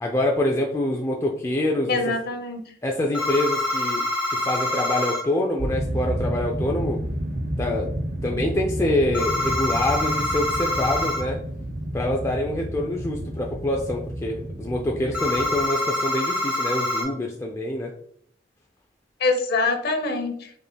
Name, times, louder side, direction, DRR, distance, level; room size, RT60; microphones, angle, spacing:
voice 1, 0.0-2.0 2.8-4.0 4.3-7.0 7.6-7.9 8.2-11.4 11.9-17.9, left 1 dB, 15° left, -1 dB, 0.4 m, -25 dB
voice 2, 1.9-2.6 19.2-20.5, left 3 dB, 60° left, 5 dB, 0.7 m, -24 dB
sound 1, 3.1-5.2 9.1-11.2 15.1-17.0, left 1 dB, 5° right, 1.5 m, -25 dB
sound 2, 5.6-15.6, right 1 dB, 50° right, 0.6 m, -30 dB
5.1 x 3.3 x 2.2 m, 0.64 s
head